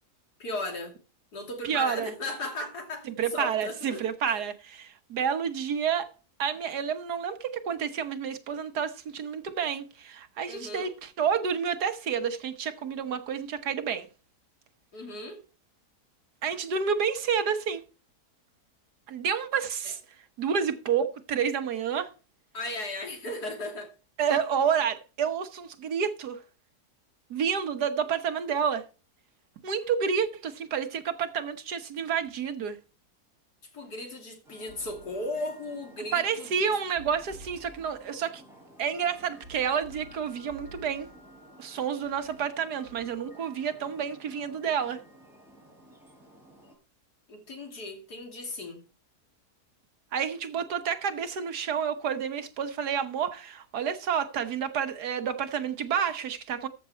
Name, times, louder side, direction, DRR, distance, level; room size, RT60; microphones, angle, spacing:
voice 1, 0.4-0.9 1.3-3.1 3.3-4.5 10.5-10.9 14.9-15.4 22.5-23.9 33.7-36.5 47.3-48.8, left 2 dB, 80° left, 3.4 m, -36 dB
voice 2, 1.6-2.1 3.1-6.1 6.4-14.1 16.4-17.8 19.1-20.0 20.4-22.1 24.2-26.4 27.3-28.8 29.6-32.8 36.1-38.4 38.8-41.1 41.6-45.0 50.1-56.7, right 7 dB, 90° right, 1.8 m, -29 dB
sound 1, 32.2-32.6 34.5-35.3 36.8-38.1 39.1-41.3 42.0-43.2, right 1 dB, 60° right, 4.8 m, -52 dB
sound 2, 34.4-46.7, equal, ahead, 5.8 m, -54 dB
14.0 x 6.7 x 4.4 m
omnidirectional pair, 1.7 m